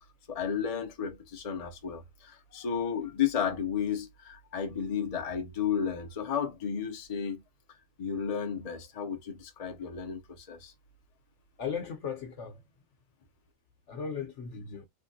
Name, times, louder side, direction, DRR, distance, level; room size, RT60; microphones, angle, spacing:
voice 1, 0.3-7.4 8.0-10.7, left 7 dB, 40° left, 0.5 m, -33 dB
voice 2, 11.6-12.6 13.9-14.9, left 6 dB, 65° left, 1.1 m, -36 dB
3.4 x 2.2 x 2.6 m
omnidirectional pair, 1.4 m